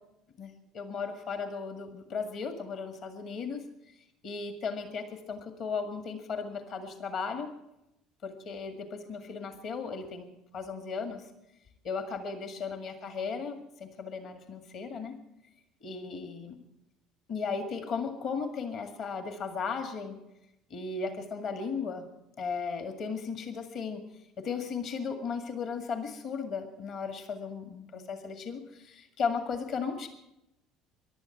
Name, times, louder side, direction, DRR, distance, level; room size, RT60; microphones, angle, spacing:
voice 1, 0.4-3.7 4.2-7.5 8.2-11.3 11.8-15.2 15.8-16.6 17.3-20.2 20.7-22.1 22.4-24.0 24.4-30.1, left 5 dB, 50° left, 7 dB, 1.9 m, -36 dB
24.0 x 11.5 x 4.5 m, 0.88 s
figure-of-eight pair, 60°, 0 cm